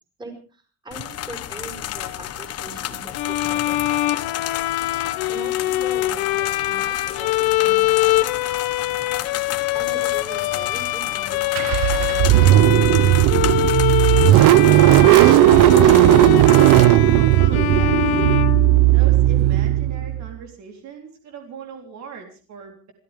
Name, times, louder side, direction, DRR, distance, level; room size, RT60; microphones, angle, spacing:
voice 1, 0.2-4.4 5.3-8.2 9.7-13.1, right 2 dB, 15° right, 3 dB, 5.7 m, -41 dB
sound 1, 0.9-16.8, left 12 dB, 45° left, 1.3 m, -32 dB
Bowed string instrument, 3.1-19.2, left 14 dB, 90° left, 1.5 m, -23 dB
Car / Engine starting, 11.5-20.3, right 15 dB, 65° right, 0.7 m, -15 dB
voice 2, 17.0-18.1 18.9-22.9, right 6 dB, 50° right, 4 dB, 3.7 m, -38 dB
29.5 x 13.5 x 3.5 m, 0.37 s
cardioid pair, 175°, 35 cm